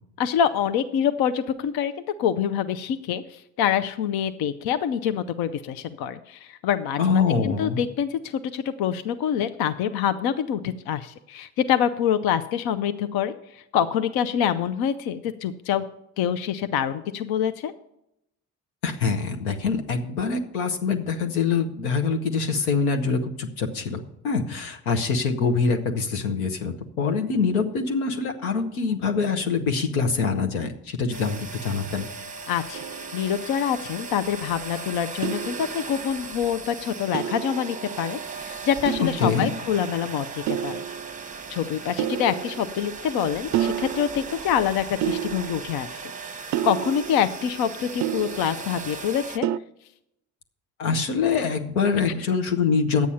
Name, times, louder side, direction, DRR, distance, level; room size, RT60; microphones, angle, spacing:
voice 1, 0.2-1.9 2.2-15.8 16.2-17.7 32.5-32.8 33.1-40.8 41.5-46.0 46.3-49.5, left 9 dB, 60° left, 11 dB, 0.7 m, -26 dB
voice 2, 7.0-7.8 18.8-32.1 39.2-39.5 50.8-53.1, left 5 dB, 85° left, 5 dB, 1.1 m, -24 dB
sound 1, 31.1-49.4, right 4 dB, 20° right, 0.8 m, -38 dB
sound 2, 32.7-33.7 35.2-36.2 37.1-38.4 38.9-39.8 40.5-41.5 42.0-43.2 43.5-44.6 45.0-46.0 46.5-48.9 49.4-49.6, right 11 dB, 45° right, 0.4 m, -31 dB
10.5 x 8.4 x 5.6 m, 0.82 s
hypercardioid pair, 50°, 42 cm